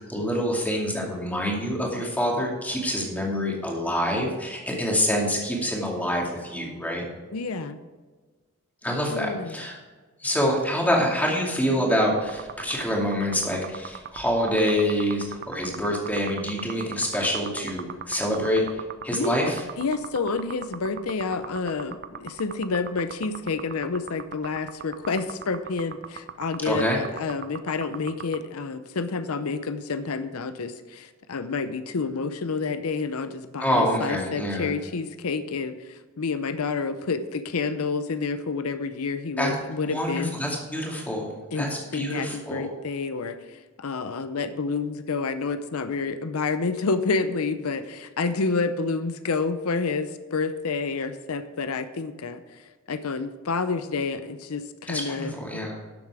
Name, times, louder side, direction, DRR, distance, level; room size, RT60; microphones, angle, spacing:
voice 1, 0.0-7.0 8.8-9.8 10.2-19.6 26.6-27.0 33.6-34.7 39.4-39.5 39.9-42.7 54.9-55.8, equal, 5° left, -2 dB, 2.3 m, -26 dB
voice 2, 7.3-7.8 9.1-9.7 19.1-40.3 41.5-55.7, left 4 dB, 80° left, 11 dB, 0.6 m, -29 dB
sound 1, 12.2-28.4, right 7 dB, 45° right, 0.5 m, -38 dB
12.5 x 7.4 x 4.8 m, 1.4 s
head